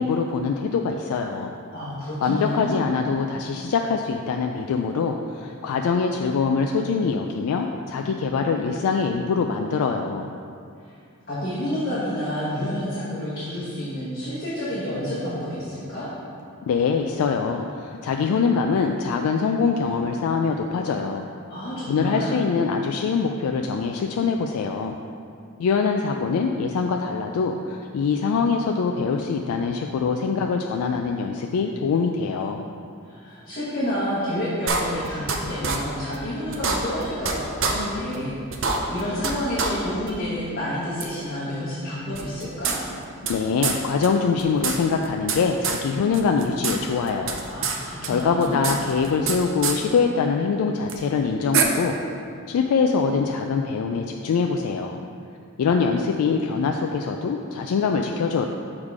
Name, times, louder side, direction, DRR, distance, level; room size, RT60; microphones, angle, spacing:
voice 1, 0.0-1.6 2.2-10.3 16.7-21.3 21.9-25.0 25.6-32.6 43.3-47.4 48.0-51.9 52.5-55.0 55.6-58.5, left 5 dB, 80° left, 3 dB, 0.3 m, -23 dB
voice 2, 1.7-2.9 10.8-11.0 11.3-16.1 21.5-22.5 33.0-42.7 47.5-48.7, equal, 40° left, -11 dB, 1.3 m, -29 dB
sound 1, 34.7-35.4 35.6-35.8 36.1-36.2 36.5-37.3 37.6-37.7 38.1-38.2 38.5-39.3 39.6-39.7 40.1-40.2 41.0-41.1 42.1-43.3 43.6-43.8 44.0-44.1 44.4-45.4 45.6-45.8 46.1-46.8 47.0-47.8 48.0-49.4 49.6-49.8 50.9-51.0 51.5-51.6, right 5 dB, 60° right, 0.5 m, -25 dB
6.4 x 3.7 x 4.8 m, 2.4 s
head